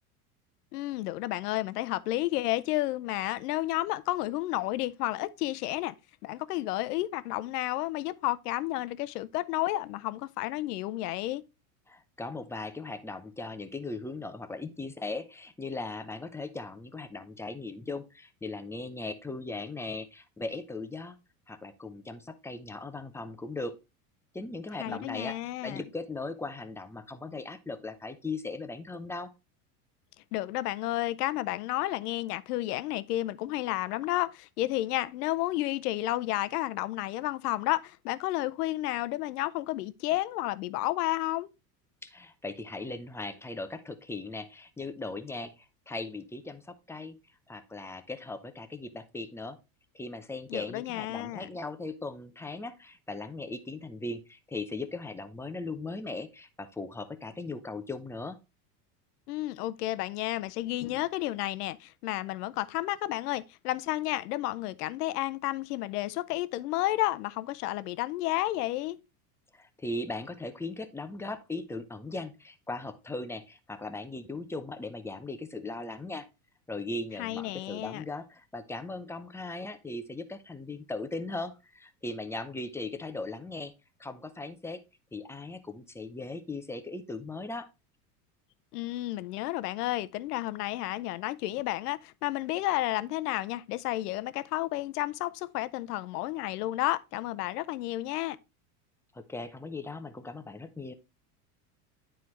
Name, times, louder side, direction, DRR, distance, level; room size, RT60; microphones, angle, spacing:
voice 1, 0.7-5.9 6.2-11.4 24.7-25.8 30.3-41.5 50.5-51.5 59.3-69.0 77.2-78.0 88.7-98.4, left 16 dB, 75° left, 0.7 m, -31 dB
voice 2, 11.9-21.2 21.5-23.7 24.3-29.3 42.0-47.2 47.5-49.6 49.9-58.4 69.5-76.3 76.7-83.7 84.0-84.8 85.1-87.7 99.1-100.9, left 2 dB, 5° left, 0.6 m, -38 dB
9.3 x 4.5 x 3.1 m
hypercardioid pair, 100°, 47 cm